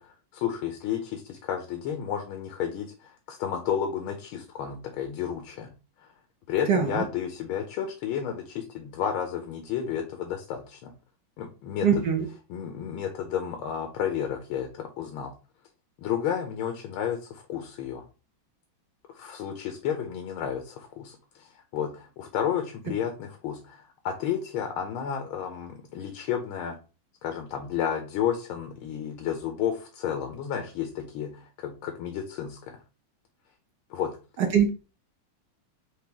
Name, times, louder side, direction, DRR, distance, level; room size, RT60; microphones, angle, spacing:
voice 1, 0.0-5.7 6.0-6.1 6.5-10.9 11.4-12.0 12.5-15.3 16.0-18.0 19.1-26.8 27.2-32.8 33.9-34.2, left 8 dB, 85° left, 4 dB, 1.6 m, -32 dB
voice 2, 6.7-7.1 11.8-12.3 34.4-34.7, right 7 dB, 65° right, 4 dB, 1.1 m, -22 dB
4.9 x 2.9 x 3.4 m, 0.33 s
omnidirectional pair, 2.2 m